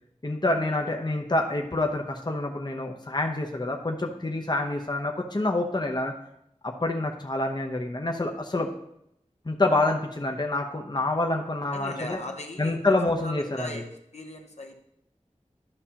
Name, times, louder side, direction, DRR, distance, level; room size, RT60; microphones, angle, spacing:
voice 1, 0.2-6.1 6.6-8.7 9.5-12.2 12.6-13.8, left 2 dB, 35° left, 2 dB, 0.8 m, -27 dB
voice 2, 11.7-12.8 13.2-13.8 14.1-14.8, left 1 dB, 65° left, 2 dB, 1.0 m, -38 dB
12.0 x 5.5 x 2.9 m, 0.78 s
wide cardioid pair, 45°, 12 cm